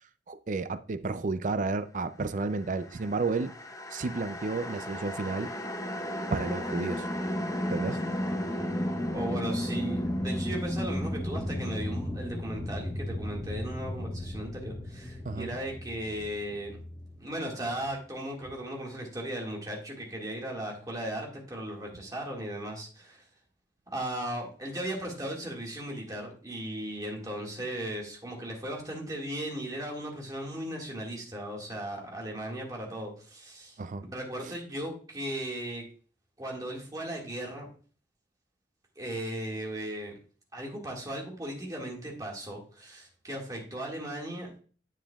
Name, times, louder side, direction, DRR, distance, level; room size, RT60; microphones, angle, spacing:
voice 1, 0.3-3.5 3.9-5.5 6.3-7.1 7.7-8.0 15.3-15.6 33.8-34.0 34.4-34.5, right 3 dB, 45° right, 0.4 m, -31 dB
sound 1, 2.8-18.0, left 1 dB, 20° left, 0.9 m, -34 dB
voice 2, 9.1-16.8 17.2-23.3 23.9-35.8 36.4-37.7 39.0-40.2 40.5-44.5, right 1 dB, 20° right, 1.9 m, -37 dB
10.0 x 7.3 x 2.4 m
head